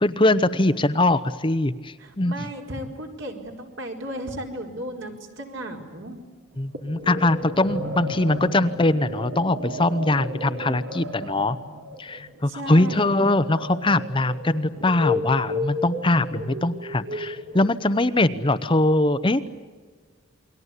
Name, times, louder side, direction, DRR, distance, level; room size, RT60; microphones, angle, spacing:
voice 1, 0.0-2.5 6.6-11.6 12.0-19.5, left 2 dB, 25° left, 11 dB, 0.8 m, -22 dB
voice 2, 2.0-6.2 12.5-13.1, right 1 dB, 60° right, 2 dB, 4.4 m, -35 dB
sound 1, 6.7-18.1, left 2 dB, 75° right, 3.0 m, -33 dB
29.0 x 22.5 x 8.4 m, 1.5 s
head